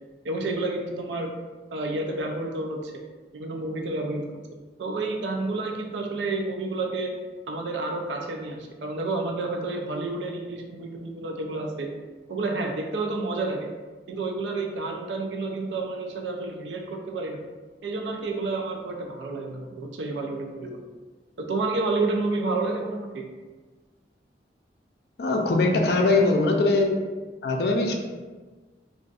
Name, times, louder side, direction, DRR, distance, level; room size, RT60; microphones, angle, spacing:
voice 1, 0.2-1.3 1.7-2.9 3.3-4.4 4.8-7.1 7.5-11.9 12.3-13.7 14.1-17.4 17.8-20.8 21.4-23.3 25.8-26.2, right 3 dB, 85° right, 2 dB, 0.4 m, -30 dB
voice 2, 25.2-27.0 27.4-27.9, left 2 dB, 60° left, 2 dB, 0.4 m, -21 dB
2.4 x 2.3 x 3.8 m, 1.3 s
head